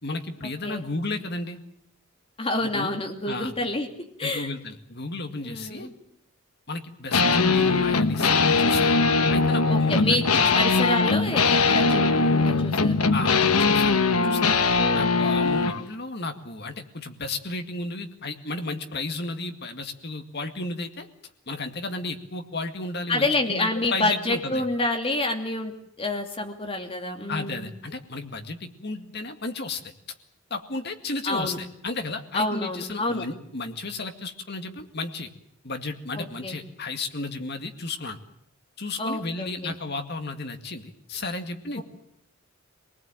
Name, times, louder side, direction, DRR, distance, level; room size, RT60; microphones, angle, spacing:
voice 1, 0.0-1.6 2.6-2.9 3.3-3.5 4.2-5.9 6.7-8.9 9.3-10.6 13.1-14.5 14.9-21.1 21.5-24.6 27.3-29.9 30.5-35.3 35.6-38.2 38.8-41.8, left 3 dB, 45° left, 6 dB, 2.1 m, -33 dB
voice 2, 2.4-3.9 4.2-4.5 5.4-5.9 9.7-12.9 14.1-14.5 14.7-15.1 23.1-27.7 31.3-31.6 32.3-33.3 36.2-36.6 39.0-39.8 41.8-41.9, left 2 dB, 25° left, 3 dB, 2.7 m, -28 dB
sound 1, 7.1-15.8, left 4 dB, 85° left, 1.3 m, -21 dB
24.5 x 19.5 x 9.1 m, 0.71 s
head